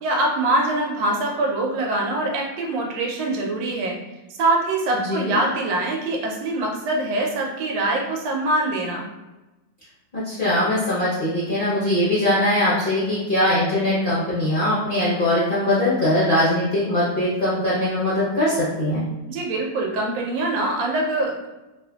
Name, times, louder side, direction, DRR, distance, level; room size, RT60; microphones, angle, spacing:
voice 1, 0.0-4.0 4.4-9.1 19.3-21.5, right 2 dB, 90° right, 0 dB, 1.3 m, -24 dB
voice 2, 5.0-5.4 10.1-19.0, left 1 dB, 50° left, -11 dB, 0.6 m, -21 dB
3.0 x 2.5 x 2.3 m, 1.1 s
omnidirectional pair, 2.0 m